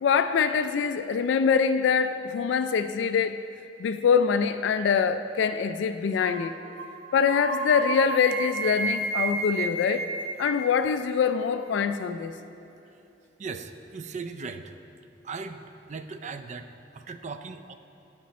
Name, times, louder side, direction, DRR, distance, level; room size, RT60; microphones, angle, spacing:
voice 1, 0.0-3.4 3.8-6.6 7.1-10.1 10.4-12.3, left 6 dB, 70° left, 0.3 m, -24 dB
sound 1, 6.2-6.4 6.8-6.9 7.2-10.6, right 3 dB, 75° right, 1.4 m, -31 dB
voice 2, 13.4-14.8 15.2-17.7, right 4 dB, 40° right, 0.4 m, -38 dB
14.0 x 5.2 x 4.2 m
head